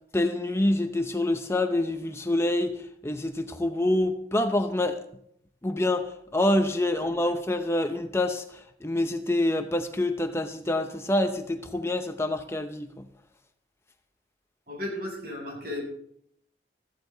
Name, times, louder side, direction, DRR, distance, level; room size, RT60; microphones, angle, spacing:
voice 1, 0.1-5.0 5.6-13.1, left 1 dB, 15° left, 0.7 m, -26 dB
voice 2, 7.0-7.3 14.7-15.8, left 1 dB, 55° right, 6.6 m, -35 dB
16.0 x 15.0 x 4.0 m
head